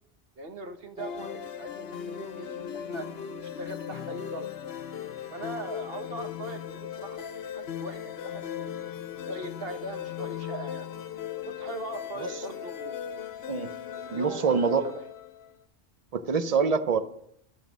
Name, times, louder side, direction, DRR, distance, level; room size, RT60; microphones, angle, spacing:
voice 1, 0.4-3.1 3.4-4.5 5.3-7.2 7.5-8.8 9.2-10.9 11.4-13.0 13.9-15.1, right 2 dB, 55° right, 6 dB, 1.4 m, -40 dB
sound 1, 1.0-15.5, left 9 dB, 60° left, 0.9 m, -38 dB
voice 2, 14.1-14.8 16.1-17.0, right 5 dB, 40° right, 11 dB, 0.7 m, -25 dB
12.0 x 7.3 x 6.2 m, 0.72 s
omnidirectional pair, 1.2 m